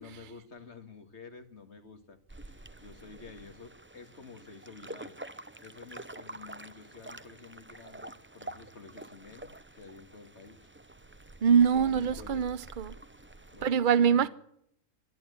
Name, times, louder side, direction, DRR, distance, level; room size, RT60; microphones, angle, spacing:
voice 1, 0.0-5.2 5.6-10.6 11.5-12.5 13.5-14.3, left 4 dB, 55° left, 2.3 m, -50 dB
sound 1, 2.3-13.7, right 2 dB, 10° right, 0.6 m, -47 dB
voice 2, 11.4-13.0 13.6-14.3, right 7 dB, 40° right, 1.0 m, -24 dB
25.5 x 11.0 x 9.7 m
omnidirectional pair, 1.4 m